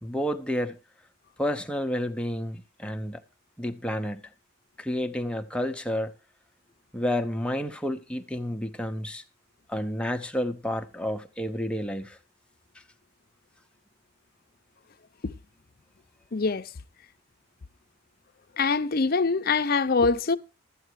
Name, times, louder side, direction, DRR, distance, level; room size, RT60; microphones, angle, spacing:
voice 1, 0.0-0.8 1.4-3.2 3.6-4.2 4.8-6.1 6.9-9.2 9.7-12.2, left 1 dB, 5° left, 0.8 m, -30 dB
voice 2, 16.3-16.7 18.6-20.4, left 4 dB, 45° left, 0.6 m, -24 dB
13.0 x 8.1 x 4.7 m
head